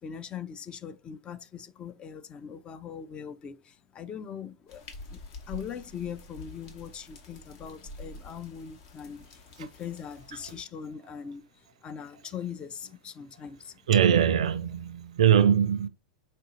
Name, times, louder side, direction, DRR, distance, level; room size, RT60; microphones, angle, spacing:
voice 1, 0.0-4.8 5.1-13.8, left 7 dB, 25° left, 0.4 m, -41 dB
sound 1, 4.7-10.6, left 2 dB, 55° left, 1.1 m, -47 dB
voice 2, 13.9-15.9, right 9 dB, 70° right, 0.4 m, -22 dB
4.2 x 2.7 x 2.4 m
figure-of-eight pair, 95°, 4 cm